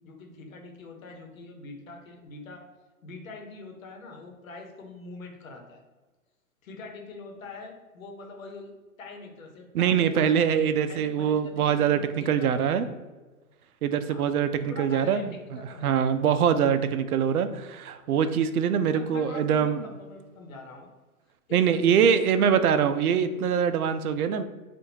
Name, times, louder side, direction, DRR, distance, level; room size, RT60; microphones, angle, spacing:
voice 1, 0.0-2.7 3.0-5.8 6.6-8.7 9.0-10.4 10.9-13.0 14.0-14.3 14.7-15.9 18.9-20.9 21.5-22.5, left 3 dB, 65° left, 2 dB, 1.1 m, -43 dB
voice 2, 9.7-12.9 13.8-15.2 15.8-19.8 21.5-24.4, right 8 dB, 80° right, 11 dB, 0.5 m, -23 dB
4.3 x 2.5 x 2.7 m, 1.3 s
hypercardioid pair, 140°, 44 cm